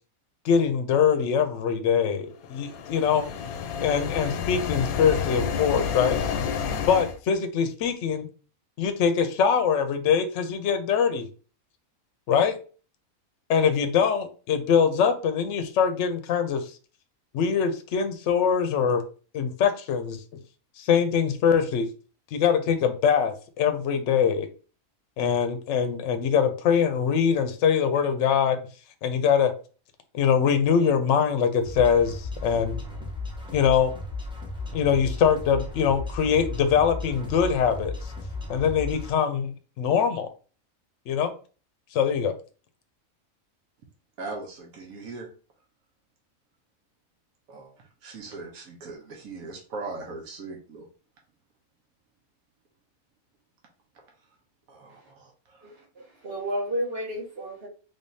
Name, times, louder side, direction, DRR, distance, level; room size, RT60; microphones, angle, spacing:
voice 1, 0.4-3.3 3.8-6.2 6.9-8.3 8.8-11.3 12.3-12.6 13.5-16.6 17.3-19.0 19.3-20.2 20.8-21.9 22.3-24.5 25.2-28.6 29.0-29.5 30.1-32.8 33.5-33.9 34.7-37.9 38.5-40.3 41.1-41.3 41.9-42.3, left 7 dB, 65° left, 0.9 m, -23 dB
sound 1, 2.5-7.2, left 7 dB, 85° left, 1.0 m, -30 dB
sound 2, 31.6-39.1, left 2 dB, 10° right, 0.3 m, -35 dB
voice 2, 44.2-45.3 47.5-50.9 54.7-55.7, right 3 dB, 80° right, 1.4 m, -39 dB
voice 3, 55.6-57.7, equal, 50° right, 1.0 m, -32 dB
3.7 x 3.5 x 2.7 m
omnidirectional pair, 1.5 m